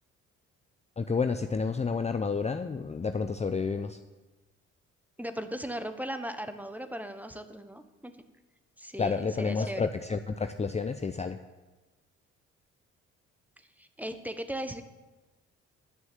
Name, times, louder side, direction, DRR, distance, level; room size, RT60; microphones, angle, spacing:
voice 1, 1.0-4.0 9.0-11.4, left 5 dB, 20° left, 8 dB, 0.6 m, -30 dB
voice 2, 5.2-8.1 8.8-9.9 13.8-14.8, equal, 5° right, 9 dB, 1.2 m, -37 dB
10.0 x 6.3 x 9.0 m, 1.2 s
supercardioid pair, 60°, 31 cm